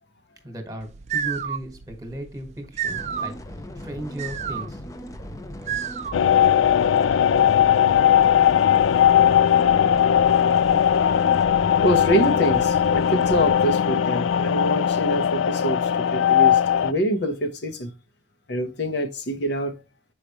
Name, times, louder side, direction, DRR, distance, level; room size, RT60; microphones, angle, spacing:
voice 1, 0.4-3.3 3.8-4.9, equal, 20° right, 1.3 m, -36 dB
sound 1, 0.8-6.4, right 8 dB, 35° right, 0.3 m, -32 dB
sound 2, 2.9-13.5, left 1 dB, 15° left, 0.5 m, -38 dB
sound 3, 6.1-16.9, left 9 dB, 85° left, 0.3 m, -19 dB
voice 2, 11.8-17.9 18.5-19.7, equal, 65° left, 0.9 m, -25 dB
6.5 x 4.8 x 2.9 m
head